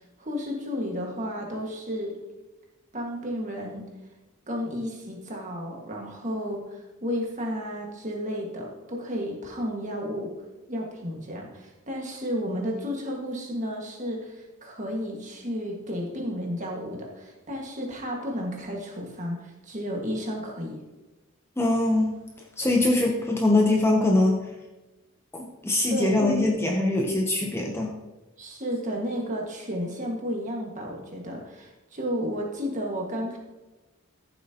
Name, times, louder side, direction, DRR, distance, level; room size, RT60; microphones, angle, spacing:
voice 1, 0.0-2.1 2.9-3.9 4.5-10.3 10.7-20.8 25.9-26.2 28.4-33.4, equal, 35° right, 0 dB, 1.8 m, -32 dB
voice 2, 21.6-22.1 22.6-24.4 25.3-27.9, left 2 dB, 10° left, 0 dB, 0.8 m, -22 dB
13.5 x 7.4 x 2.9 m, 1.1 s
head